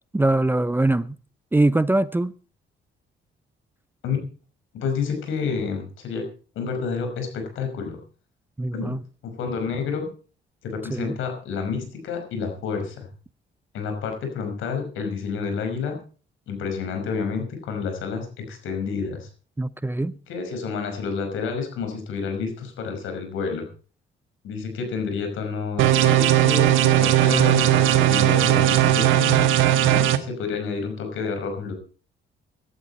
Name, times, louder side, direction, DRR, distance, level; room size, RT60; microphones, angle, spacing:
voice 1, 0.1-1.2 1.5-2.3 8.6-9.0 10.9-11.1 19.6-20.1, right 2 dB, 10° right, 0.6 m, -22 dB
voice 2, 4.7-6.3 6.6-8.0 8.7-10.1 10.6-13.1 13.7-16.0 16.5-19.3 20.3-23.7 24.4-29.5 29.8-31.7, left 5 dB, 85° left, 5.3 m, -29 dB
sound 1, 25.8-30.2, right 13 dB, 90° right, 1.4 m, -18 dB
17.0 x 12.0 x 4.4 m
cardioid pair, 90°, 20 cm